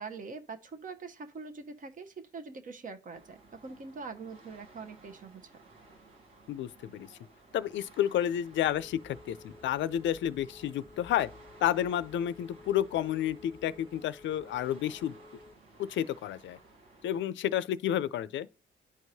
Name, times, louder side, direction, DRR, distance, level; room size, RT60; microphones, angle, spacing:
voice 1, 0.0-5.6, right 4 dB, 40° right, 0.8 m, -43 dB
sound 1, 3.1-17.2, right 2 dB, 85° right, 1.5 m, -57 dB
voice 2, 6.5-7.1 7.5-11.3 11.6-15.1 15.8-16.6 17.0-18.5, left 11 dB, 70° left, 0.5 m, -30 dB
Telephone, 8.5-15.5, left 3 dB, 15° left, 0.4 m, -53 dB
11.0 x 4.6 x 2.7 m
cardioid pair, 90°, 20 cm